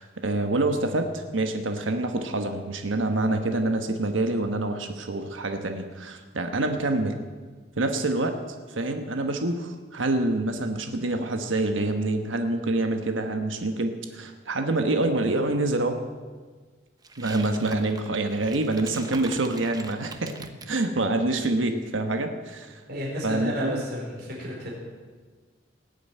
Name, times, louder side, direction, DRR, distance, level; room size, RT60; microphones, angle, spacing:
voice 1, 0.0-7.2 7.8-8.4 8.7-16.0 17.2-20.4 20.7-22.8 23.2-23.8, right 2 dB, 90° right, 6 dB, 1.3 m, -26 dB
sound 1, 17.0-20.8, right 3 dB, 20° right, 0.9 m, -43 dB
voice 2, 22.9-24.7, equal, 55° right, -3 dB, 4.3 m, -32 dB
18.5 x 7.9 x 9.1 m, 1.5 s
head